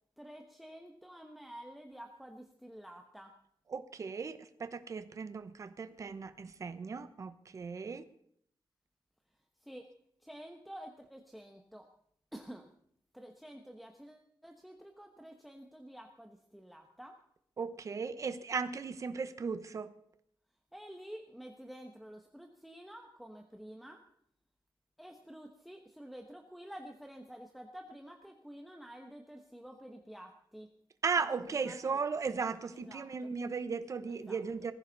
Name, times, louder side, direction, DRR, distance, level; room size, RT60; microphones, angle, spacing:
voice 1, 0.2-3.3 9.6-9.9 10.2-11.9 12.3-12.7 13.1-17.1 20.7-24.0 25.0-30.7 31.2-32.0 32.7-33.3 34.1-34.4, equal, ahead, 3 dB, 1.1 m, -50 dB
voice 2, 3.7-8.0 17.6-19.9 31.0-34.7, right 5 dB, 40° right, 12 dB, 1.0 m, -36 dB
20.0 x 15.0 x 4.0 m, 0.67 s
wide cardioid pair, 170°, 8 cm